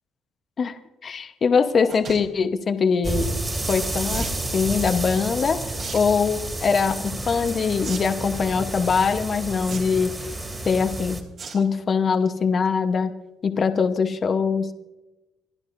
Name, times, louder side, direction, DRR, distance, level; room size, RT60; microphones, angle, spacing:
voice 1, 1.0-3.3 3.7-5.6 5.9-10.1 10.6-11.2 11.5-13.1 13.4-14.7, left 5 dB, 45° left, 8 dB, 1.1 m, -22 dB
sound 1, 1.8-2.2 4.1-4.4 5.7-6.0 6.4-6.7 7.8-8.0 8.3-8.4 9.6-10.1 11.4-11.6 12.0-12.3 12.6-12.7 12.9-13.0, right 5 dB, 55° right, 3.2 m, -36 dB
sound 2, 3.0-11.2, right 2 dB, 20° right, 2.7 m, -30 dB
28.5 x 11.5 x 2.7 m, 1.0 s
cardioid pair, 95°, 0 cm